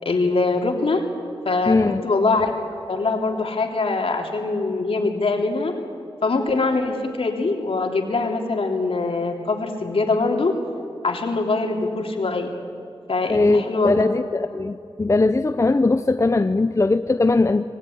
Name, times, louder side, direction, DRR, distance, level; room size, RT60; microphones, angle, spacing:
voice 1, 0.0-1.0 1.4-2.5 2.9-5.7 6.2-10.6 11.0-12.5 13.1-14.0, left 3 dB, 65° left, 2 dB, 3.2 m, -23 dB
voice 2, 1.7-2.0 13.3-17.7, left 3 dB, 30° left, 10 dB, 0.7 m, -20 dB
25.5 x 18.5 x 9.5 m, 2.4 s
wide cardioid pair, 75°, 10 cm